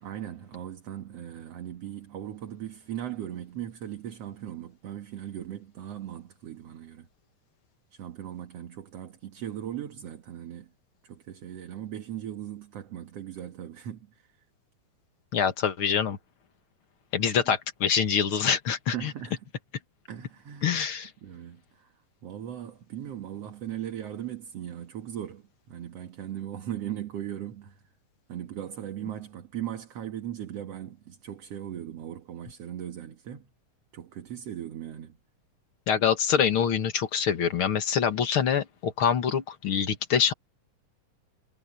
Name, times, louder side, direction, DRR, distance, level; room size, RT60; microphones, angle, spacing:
voice 1, 0.0-7.1 7.9-10.7 11.0-14.4 17.5-17.6 18.9-19.5 20.1-20.8 21.2-21.9 22.2-27.8 28.3-33.5 33.9-35.2, right 10 dB, 55° right, 2.3 m, -38 dB
voice 2, 15.3-16.2 17.1-19.1 20.6-21.1 35.9-40.3, left 7 dB, 45° left, 2.0 m, -25 dB
omnidirectional pair, 3.9 m